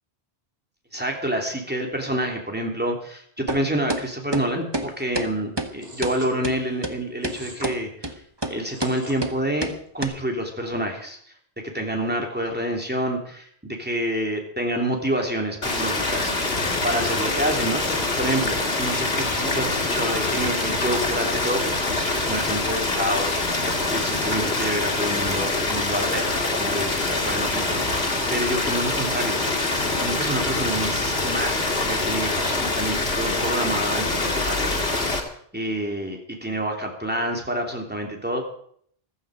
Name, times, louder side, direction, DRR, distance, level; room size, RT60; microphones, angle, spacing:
voice 1, 0.9-8.2 8.5-11.2 11.6-35.2 35.5-38.5, right 1 dB, 10° right, 1 dB, 3.0 m, -28 dB
sound 1, 3.5-3.6 3.9-4.0 4.3-4.4 4.7-4.9 5.1-5.3 5.6-5.7 6.0-6.1 6.4-6.5 6.8-6.9 7.2-7.4 7.6-7.8 8.0-8.1 8.4-8.5 8.8-8.9 9.2-9.3 9.6-9.7 10.0-10.1, right 1 dB, 25° right, 1.3 m, -27 dB
sound 2, 5.8-6.3 7.2-7.7 8.6-9.2, right 1 dB, 40° right, 2.6 m, -39 dB
sound 3, 15.6-35.2, left 2 dB, 75° left, 2.6 m, -25 dB
15.0 x 14.0 x 5.1 m, 0.63 s
omnidirectional pair, 1.0 m